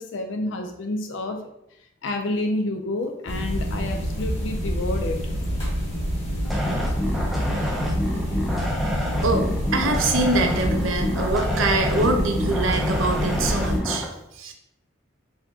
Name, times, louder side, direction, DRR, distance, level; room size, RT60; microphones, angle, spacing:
voice 1, 0.0-1.4 2.0-5.2, left 2 dB, 70° left, 4 dB, 0.4 m, -29 dB
sound 1, 3.3-13.8, equal, 30° left, 1.5 m, -28 dB
sound 2, 6.4-14.0, left 1 dB, ahead, 0.5 m, -27 dB
voice 2, 9.2-14.1 14.4-14.5, right 2 dB, 85° right, 4 dB, 0.7 m, -24 dB
4.4 x 3.5 x 2.8 m, 0.82 s
head